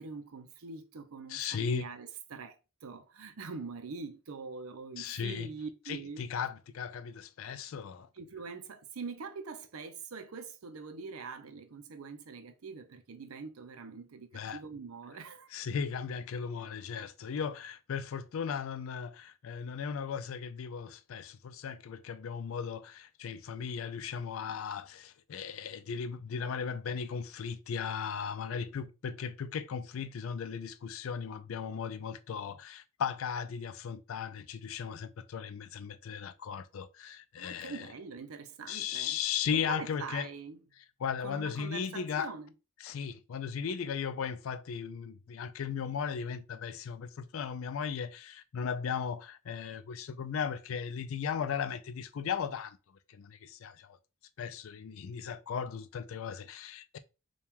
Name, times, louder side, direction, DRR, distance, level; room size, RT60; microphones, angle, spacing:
voice 1, 0.0-2.5 2.8-6.2 8.1-15.5 37.4-39.2 39.5-40.6 41.2-42.5, right 4 dB, 75° right, 0.6 m, -44 dB
voice 2, 1.3-1.9 5.0-5.5 5.9-8.1 14.3-14.6 15.5-37.9 38.7-40.3 41.0-42.3 42.8-52.8 53.1-54.0 54.4-57.0, left 7 dB, 65° left, 0.4 m, -37 dB
4.4 x 2.3 x 3.5 m
head